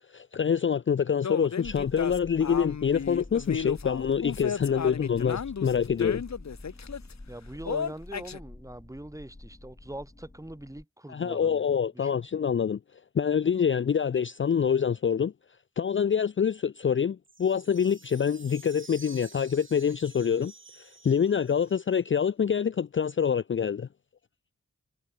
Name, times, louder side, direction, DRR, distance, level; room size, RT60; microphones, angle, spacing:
voice 1, 0.1-6.2 11.1-12.8 13.1-15.3 15.8-20.5 20.8-23.9, left 7 dB, 45° left, 0.5 m, -26 dB
sound 1, 1.2-7.1 7.7-8.4, left 7 dB, 70° left, 1.1 m, -34 dB
sound 2, 1.6-10.8, left 2 dB, 25° left, 7.6 m, -47 dB
voice 2, 7.3-11.7 11.9-12.2, right 1 dB, 10° right, 2.1 m, -42 dB
sound 3, 17.3-22.0, right 3 dB, 45° right, 3.2 m, -51 dB
wide cardioid pair, 90°, 29 cm